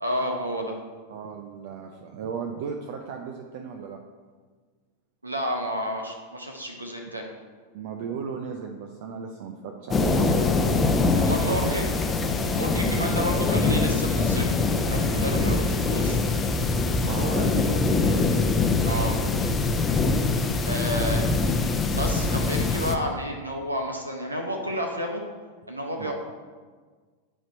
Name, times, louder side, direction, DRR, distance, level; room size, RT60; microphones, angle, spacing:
voice 1, 0.0-0.8 5.2-7.3 11.2-11.9 12.6-14.6 14.9-16.2 18.8-19.2 20.7-21.2 21.9-25.2 25.7-26.1, equal, 80° right, 2 dB, 0.9 m, -30 dB
voice 2, 1.1-4.0 7.7-10.2 11.5-11.8 12.8-13.3 15.4-15.6 16.7-18.4 20.8-21.2 21.8-22.1 26.0-26.1, right 6 dB, 50° right, 4 dB, 0.6 m, -35 dB
sound 1, 9.9-23.0, left 3 dB, 20° left, 0.7 m, -23 dB
10.0 x 4.4 x 4.4 m, 1.5 s
figure-of-eight pair, 90°, 0 cm